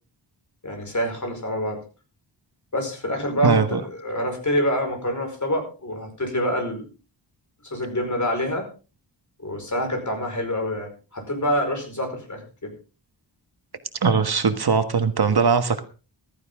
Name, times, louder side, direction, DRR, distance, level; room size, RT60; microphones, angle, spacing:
voice 1, 0.6-1.8 2.7-6.9 7.6-8.7 9.4-12.7, equal, 40° left, 4 dB, 4.9 m, -26 dB
voice 2, 3.4-3.8 14.0-15.8, right 5 dB, 55° right, 8 dB, 1.5 m, -20 dB
15.0 x 14.0 x 3.7 m, 0.34 s
wide cardioid pair, 130°, 46 cm